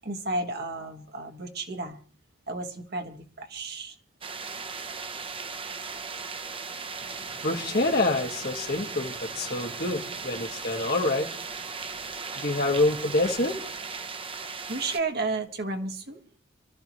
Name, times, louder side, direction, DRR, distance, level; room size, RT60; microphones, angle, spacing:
voice 1, 0.0-2.0 2.5-3.9 14.7-16.2, right 3 dB, 50° right, 5 dB, 1.6 m, -32 dB
sound 1, 4.2-15.0, right 5 dB, 25° right, 0.8 m, -37 dB
voice 2, 7.2-11.3 12.3-13.6, left 2 dB, 50° left, 2 dB, 1.9 m, -27 dB
26.5 x 13.0 x 3.1 m, 0.42 s
head